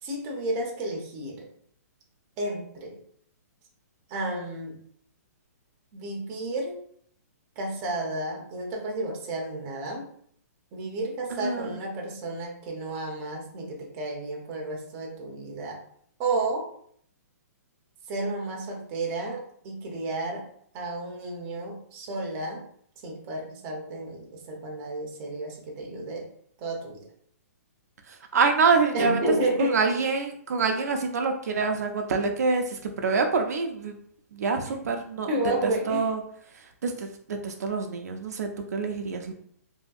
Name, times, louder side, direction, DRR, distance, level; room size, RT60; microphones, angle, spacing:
voice 1, 0.0-1.5 2.4-3.0 4.1-4.8 5.9-6.8 7.6-10.1 10.7-15.8 16.2-16.6 18.1-20.5 20.7-22.6 23.0-26.3 26.6-27.1 28.9-30.0 34.7-34.8 35.3-36.1, right 2 dB, 25° right, 0 dB, 0.6 m, -31 dB
voice 2, 11.3-11.7 28.1-29.2 29.7-34.0 34.3-35.3 35.9-36.2 36.8-39.3, right 4 dB, 70° right, 4 dB, 0.4 m, -26 dB
2.7 x 2.6 x 2.4 m, 0.63 s
hypercardioid pair, 160°, 9 cm